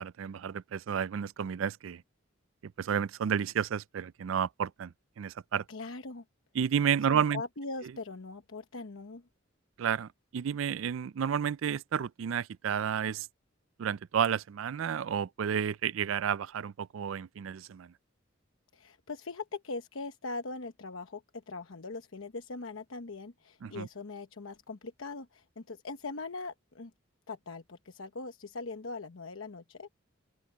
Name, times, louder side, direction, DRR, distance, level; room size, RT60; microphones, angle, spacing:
voice 1, 0.0-2.0 2.6-5.6 6.6-7.4 9.8-13.3 13.8-17.9 23.6-23.9, right 8 dB, 80° right, 0.4 m, -31 dB
voice 2, 5.7-6.2 7.1-9.2 18.7-26.9 27.3-29.9, left 3 dB, 85° left, 1.0 m, -41 dB
open air
head